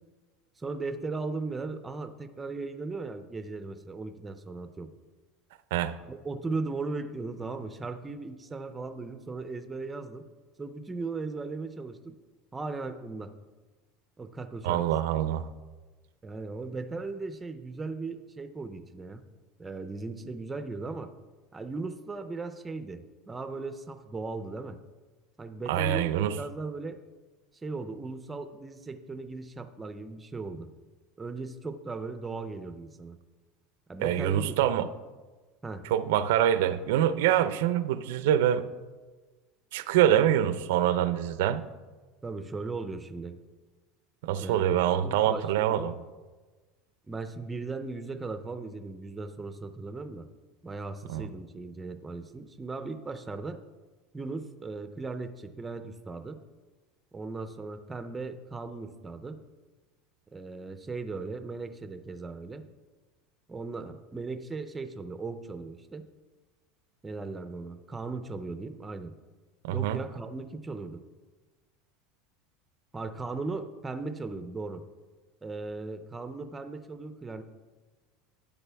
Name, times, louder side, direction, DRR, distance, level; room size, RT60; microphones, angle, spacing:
voice 1, 0.6-4.9 6.1-10.3 10.6-12.2 12.5-13.3 14.2-14.8 16.2-19.2 19.6-21.1 21.5-24.8 25.4-27.0 27.6-30.7 31.2-33.2 33.9-34.9 35.6-35.9 42.2-43.4 44.4-45.9 47.1-50.3 50.6-53.6 54.1-56.4 57.1-59.4 60.3-62.7 63.5-66.1 67.0-69.1 69.7-71.0 72.9-74.8 75.4-77.4, right 3 dB, 10° right, 9 dB, 0.4 m, -37 dB
voice 2, 14.6-15.5 25.7-26.4 34.0-34.9 35.9-38.7 39.7-41.6 44.2-45.9 51.1-51.3 69.6-70.0, right 11 dB, 80° right, 14 dB, 0.5 m, -25 dB
12.5 x 8.9 x 3.4 m, 1.3 s
cardioid pair, 175°, 0 cm